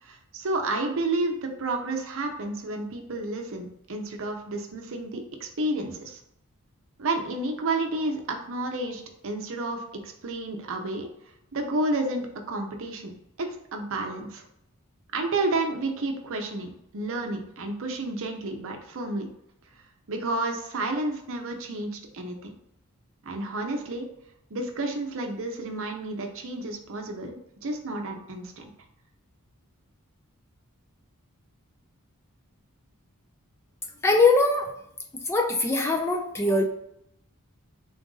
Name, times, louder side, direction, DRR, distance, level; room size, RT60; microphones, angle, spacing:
voice 1, 0.0-6.2 7.0-11.1 11.5-13.1 13.4-14.4 15.1-19.3 20.1-22.5 23.2-24.1 24.5-28.7, right 2 dB, 60° right, 4 dB, 0.7 m, -31 dB
voice 2, 34.0-34.7 35.1-36.6, left 3 dB, 10° left, 2 dB, 0.3 m, -22 dB
3.9 x 2.5 x 3.8 m, 0.76 s
head